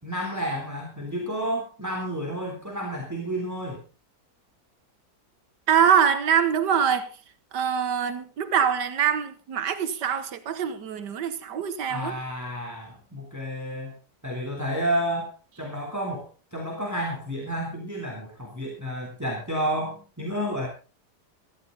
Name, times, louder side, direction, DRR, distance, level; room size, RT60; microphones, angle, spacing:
voice 1, 0.0-3.8 11.9-14.0 14.2-15.3 15.6-16.2 16.5-20.7, equal, 10° right, 3.5 m, -30 dB
voice 2, 5.7-7.1 7.5-12.2, right 8 dB, 85° right, 1.8 m, -24 dB
17.0 x 14.0 x 4.0 m
omnidirectional pair, 1.8 m